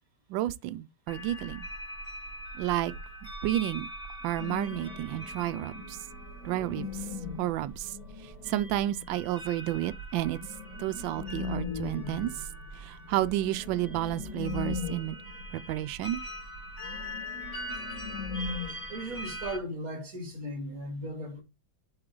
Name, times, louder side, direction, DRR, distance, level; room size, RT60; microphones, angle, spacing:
voice 1, 0.3-1.7 2.5-2.9 3.2-3.9 4.2-6.0 6.4-7.1 7.4-8.0 8.2-10.4 10.8-12.5 12.7-15.2 15.5-16.2, right 14 dB, 80° right, 1.3 m, -31 dB
sound 1, 1.1-19.6, equal, 10° right, 3.1 m, -43 dB
sound 2, 4.4-9.2 10.4-15.9 16.1-16.2 16.7-19.5, left 5 dB, 55° left, 1.7 m, -40 dB
voice 2, 18.9-21.4, equal, 45° right, 2.9 m, -37 dB
7.9 x 4.0 x 3.7 m
omnidirectional pair, 2.1 m